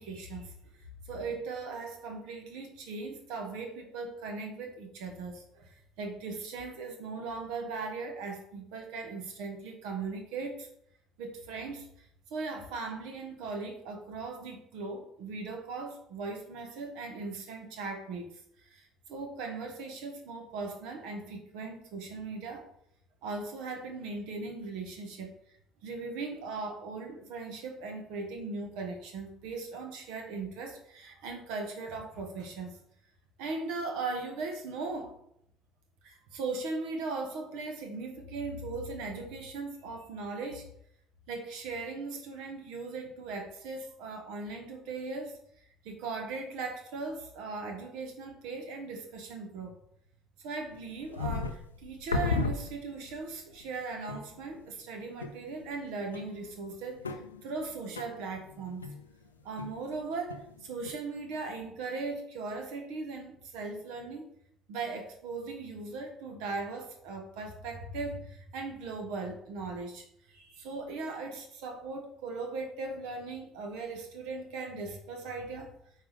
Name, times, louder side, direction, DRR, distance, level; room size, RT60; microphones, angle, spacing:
voice 1, 0.0-10.7 11.2-22.7 23.2-25.3 25.8-32.8 33.4-35.2 36.0-40.7 41.3-45.4 45.8-49.8 50.4-58.8 59.4-64.3 64.7-75.7, right 3 dB, 65° right, 4 dB, 1.4 m, -39 dB
sound 1, 50.7-53.2 53.6-53.7 54.1-54.6 55.2-55.9 56.1-60.0 60.3-60.9, left 4 dB, 85° left, 0.5 m, -36 dB
8.5 x 4.8 x 3.5 m, 0.70 s
figure-of-eight pair, 55°, 0 cm